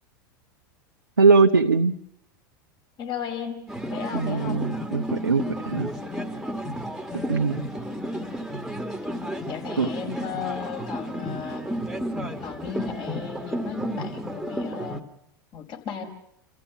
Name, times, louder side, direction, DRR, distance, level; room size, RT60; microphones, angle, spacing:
voice 1, 1.2-1.9 4.1-5.9 7.3-7.6 9.8-10.2, right 4 dB, 90° right, 4 dB, 0.8 m, -21 dB
voice 2, 3.0-4.7 8.4-8.5 9.4-11.6 12.4-15.0 15.5-16.0, left 7 dB, 40° left, 3 dB, 5.0 m, -35 dB
sound 1, 3.7-15.0, equal, ahead, 2.1 m, -32 dB
29.5 x 15.0 x 7.1 m, 0.77 s
hypercardioid pair, 85°, 11 cm